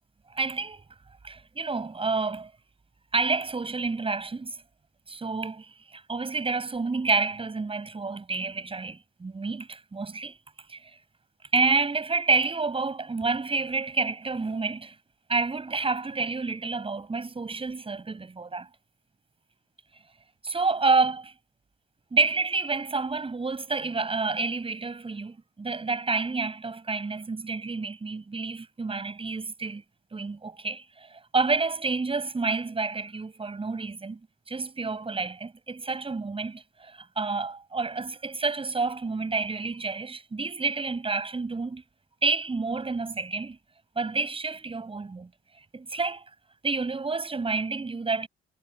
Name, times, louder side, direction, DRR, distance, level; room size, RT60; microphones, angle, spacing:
voice 1, 0.3-0.8 1.2-2.5 3.1-4.6 5.1-10.4 10.7-11.0 11.5-14.9 15.3-18.7 19.9-20.0 20.4-21.3 22.1-29.8 30.1-34.2 34.5-41.8 42.2-43.6 44.0-45.3 45.5-46.2 46.6-48.3, right 4 dB, 25° right, 7.9 m, -29 dB
cardioid pair, 90°, 20 cm